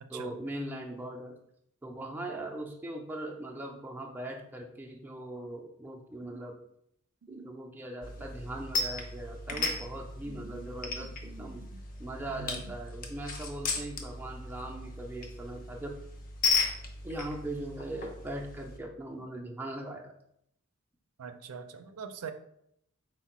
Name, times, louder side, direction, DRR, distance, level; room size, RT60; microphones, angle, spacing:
voice 1, 0.1-1.4 1.8-6.6 7.3-11.6 12.0-16.0 17.0-20.1, right 1 dB, 10° right, 0 dB, 0.4 m, -40 dB
sound 1, 8.0-18.8, left 3 dB, 40° left, 0.6 m, -36 dB
voice 2, 10.3-11.6 12.4-12.6 21.2-22.3, right 6 dB, 90° right, 9 dB, 0.4 m, -44 dB
4.6 x 2.1 x 4.1 m, 0.74 s
head